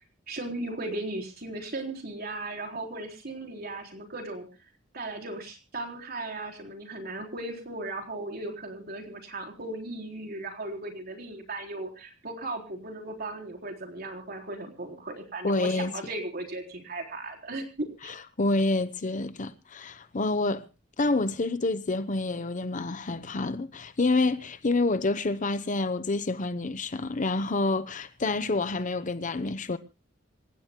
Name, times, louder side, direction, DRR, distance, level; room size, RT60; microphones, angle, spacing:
voice 1, 0.3-4.5 4.9-18.1, right 2 dB, 50° right, 4.0 m, -37 dB
voice 2, 15.4-15.9 18.0-20.6 21.0-29.8, left 2 dB, 40° left, 0.8 m, -28 dB
27.0 x 15.5 x 2.2 m
head